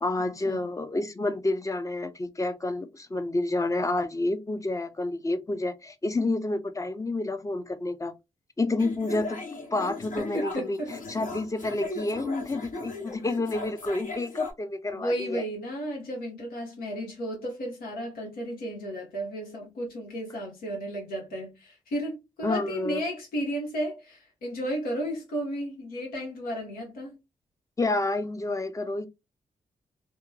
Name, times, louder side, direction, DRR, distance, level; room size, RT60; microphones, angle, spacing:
voice 1, 0.0-8.1 8.6-9.4 9.7-10.8 11.1-15.4 22.4-23.0 27.8-29.1, left 2 dB, 20° left, 0.5 m, -29 dB
sound 1, 8.8-14.5, left 3 dB, 65° left, 0.9 m, -37 dB
voice 2, 10.2-10.9 14.9-27.2, equal, 85° left, 1.1 m, -33 dB
2.8 x 2.1 x 2.3 m
supercardioid pair, 40°, 15 cm